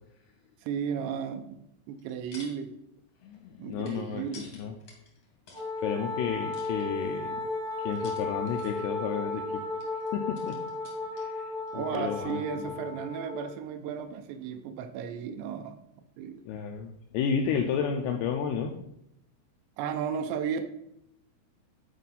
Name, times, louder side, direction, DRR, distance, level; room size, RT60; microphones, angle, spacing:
voice 1, 0.6-1.6 1.9-2.7 3.6-4.5 11.7-15.8 16.2-16.5 19.8-20.7, right 7 dB, 85° right, 9 dB, 2.7 m, -34 dB
sound 1, 1.9-2.6 2.9-5.7 6.5-7.3 7.9-9.0 9.8-11.4 11.7-11.8, left 3 dB, 70° left, 1.5 m, -51 dB
voice 2, 3.2-4.3 4.5-4.7 5.8-7.3 7.8-9.6 10.1-10.6 11.1-12.8 16.5-18.7, left 7 dB, 90° left, 3 dB, 2.3 m, -32 dB
Wind instrument woodwind instrument, 5.5-13.5, left 2 dB, 60° right, 0.4 m, -35 dB
10.0 x 4.5 x 4.0 m, 0.79 s
omnidirectional pair, 5.3 m